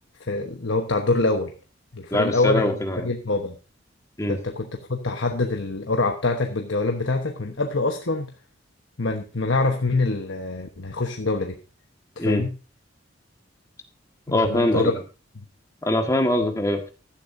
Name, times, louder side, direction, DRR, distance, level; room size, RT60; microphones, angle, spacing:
voice 1, 0.2-1.5 1.9-2.8 3.0-3.5 4.3-8.3 9.0-11.6 12.2-12.5 14.3-14.9, left 3 dB, 75° left, 4 dB, 1.2 m, -25 dB
voice 2, 2.1-3.1 4.2-4.4 12.2-12.4 14.3-15.0 15.8-16.9, left 1 dB, 15° left, 4 dB, 1.7 m, -23 dB
15.5 x 11.5 x 2.7 m, 0.33 s
head